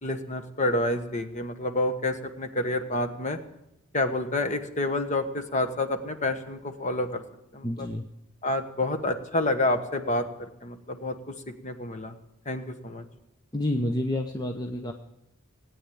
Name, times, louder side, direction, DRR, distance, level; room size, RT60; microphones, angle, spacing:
voice 1, 0.0-3.4 3.9-7.2 7.5-7.9 8.4-10.3 10.6-11.3 11.6-12.1 12.4-13.0, left 2 dB, 35° left, 8 dB, 1.2 m, -28 dB
voice 2, 7.6-8.0 13.5-14.9, left 1 dB, 20° left, 4 dB, 0.7 m, -29 dB
18.0 x 9.2 x 8.5 m, 0.83 s
head